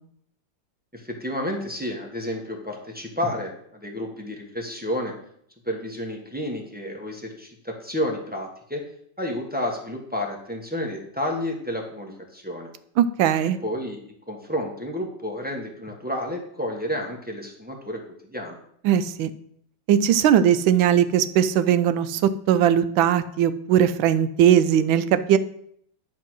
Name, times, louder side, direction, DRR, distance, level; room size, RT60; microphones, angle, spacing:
voice 1, 0.9-5.1 5.6-8.8 9.2-12.7 13.6-14.0 14.3-18.6, left 1 dB, 5° right, 0 dB, 0.8 m, -31 dB
voice 2, 13.0-13.6 18.8-19.3 19.9-25.4, right 9 dB, 85° right, 12 dB, 1.4 m, -19 dB
10.5 x 3.7 x 6.2 m, 0.68 s
omnidirectional pair, 2.1 m